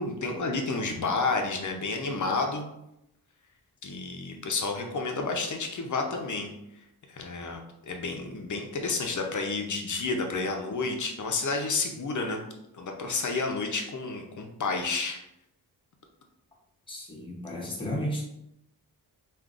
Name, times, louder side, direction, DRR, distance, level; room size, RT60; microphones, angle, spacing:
voice 1, 0.0-2.7 3.8-6.5 7.1-12.4 12.7-15.2, left 3 dB, 45° left, 3 dB, 0.6 m, -30 dB
voice 2, 16.9-18.2, equal, 10° left, -4 dB, 0.8 m, -33 dB
3.7 x 2.5 x 2.4 m, 0.83 s
wide cardioid pair, 90°, 40 cm